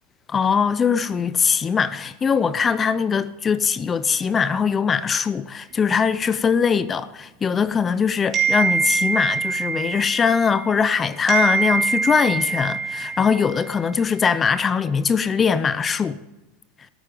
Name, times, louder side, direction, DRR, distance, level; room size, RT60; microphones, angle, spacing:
voice 1, 0.3-16.2, left 6 dB, 20° left, 0.5 m, -21 dB
sound 1, 8.3-10.9 11.3-13.8, right 5 dB, 30° right, 2.9 m, -24 dB
14.0 x 8.7 x 9.2 m
supercardioid pair, 135°, 0 cm